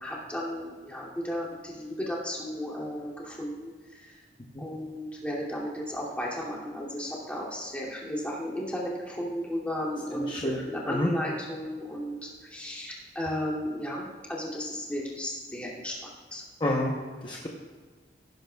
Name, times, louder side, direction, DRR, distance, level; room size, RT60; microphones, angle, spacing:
voice 1, 0.0-4.2 4.6-16.4, equal, 5° left, -5 dB, 2.5 m, -34 dB
voice 2, 10.1-10.6 10.9-11.1 16.6-16.9 17.2-17.5, left 1 dB, 25° left, -1 dB, 0.8 m, -28 dB
17.5 x 10.5 x 2.3 m, 1.5 s
head